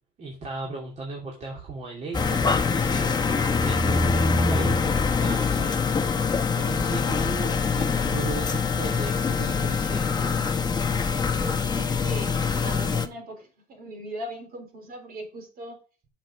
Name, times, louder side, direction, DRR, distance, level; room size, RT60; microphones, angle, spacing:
voice 1, 0.2-3.2 3.6-4.1 4.5-5.8 6.2-10.4, right 3 dB, 45° right, -1 dB, 2.6 m, -37 dB
sound 1, 2.1-13.1, left 5 dB, 25° left, 1.1 m, -24 dB
voice 2, 11.4-15.8, right 1 dB, 60° right, 4 dB, 3.6 m, -39 dB
6.5 x 6.2 x 6.2 m, 0.36 s
cardioid pair, 110°, 17 cm